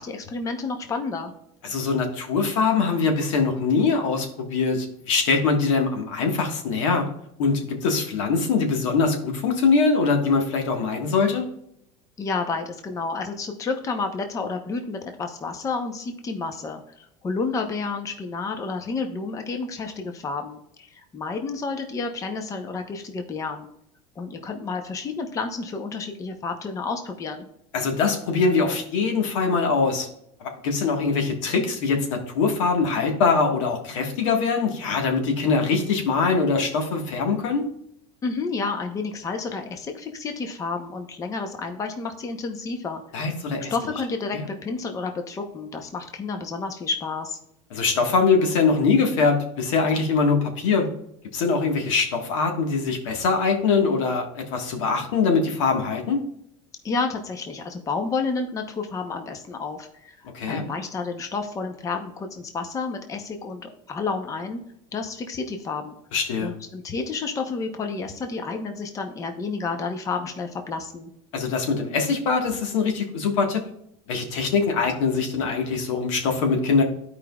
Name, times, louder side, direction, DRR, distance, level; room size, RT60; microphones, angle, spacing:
voice 1, 0.0-1.3 12.2-23.7 24.2-27.5 38.2-43.0 43.7-47.4 56.8-60.2 60.5-64.6 64.9-65.9 66.4-71.1, left 4 dB, 20° left, 5 dB, 0.8 m, -30 dB
voice 2, 1.6-7.1 7.4-11.4 27.7-30.1 30.4-37.7 43.1-43.7 44.3-44.5 47.7-50.9 51.3-56.2 60.3-60.6 66.1-66.5 71.3-73.6 74.1-76.8, left 4 dB, 90° left, 3 dB, 1.5 m, -23 dB
13.0 x 4.9 x 2.3 m, 0.76 s
cardioid pair, 150°, 16 cm